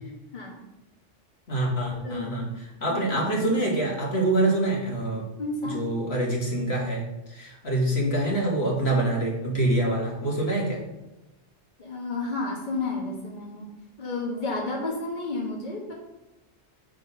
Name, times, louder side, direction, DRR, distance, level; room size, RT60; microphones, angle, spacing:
voice 1, 0.0-0.6 1.9-2.4 2.9-3.2 5.4-5.8 11.8-13.7 14.0-15.9, left 2 dB, 45° left, -2 dB, 1.5 m, -32 dB
voice 2, 1.5-2.5 2.8-5.2 5.6-10.8, right 1 dB, 65° left, -2 dB, 2.0 m, -25 dB
8.8 x 3.8 x 5.6 m, 0.98 s
omnidirectional pair, 1.2 m